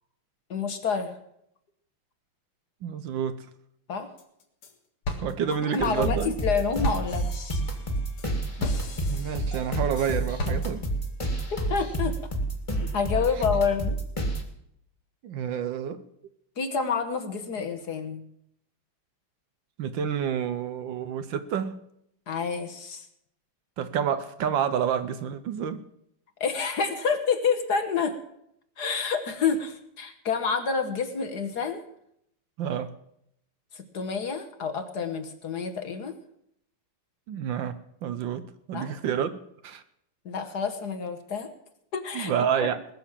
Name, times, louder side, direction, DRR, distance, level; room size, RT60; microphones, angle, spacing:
voice 1, 0.5-1.2 3.9-4.1 5.6-7.6 11.7-12.2 12.8-14.0 16.6-18.2 22.3-23.1 26.4-28.2 28.8-31.8 33.7-36.1 38.7-38.9 40.2-41.5 41.9-42.3 42.6-42.7, left 6 dB, 55° left, 8 dB, 1.5 m, -28 dB
voice 2, 2.8-3.5 5.2-6.4 8.6-8.7 9.1-10.8 15.2-16.0 19.8-21.8 23.8-25.8 32.6-32.9 37.3-39.8 42.1-42.8, right 8 dB, 65° right, 11 dB, 1.4 m, -29 dB
sound 1, 4.2-4.7 5.0-11.1, left 2 dB, 80° left, 2.7 m, -37 dB
sound 2, 5.8-14.4, right 1 dB, 15° left, 1.8 m, -29 dB
20.0 x 6.9 x 7.3 m, 0.74 s
omnidirectional pair, 2.4 m